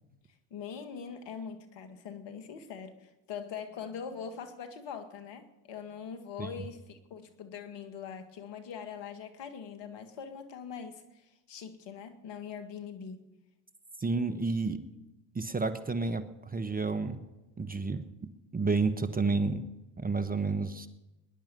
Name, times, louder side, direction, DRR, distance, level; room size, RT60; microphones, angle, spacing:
voice 1, 0.5-13.2 17.0-17.1, left 7 dB, 55° left, 8 dB, 2.0 m, -42 dB
voice 2, 14.0-14.8 15.3-17.2 17.6-18.0 18.5-19.6 20.0-20.9, right 4 dB, 15° right, 10 dB, 1.2 m, -30 dB
20.5 x 10.5 x 5.5 m, 1.0 s
hypercardioid pair, 70°, 50 cm